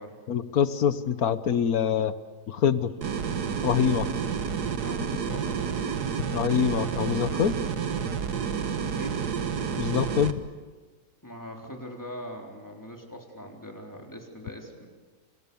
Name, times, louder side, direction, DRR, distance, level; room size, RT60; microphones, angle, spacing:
voice 1, 0.3-2.1 2.5-2.9 3.6-4.1 6.3-7.5 9.8-10.4, left 8 dB, 60° left, 13 dB, 1.4 m, -25 dB
sound 1, 3.0-10.3, right 6 dB, 70° right, 1.9 m, -30 dB
voice 2, 4.8-5.7 9.0-9.3 11.2-14.9, equal, 10° left, 1 dB, 3.9 m, -42 dB
29.0 x 26.5 x 7.1 m, 1.4 s
omnidirectional pair, 1.8 m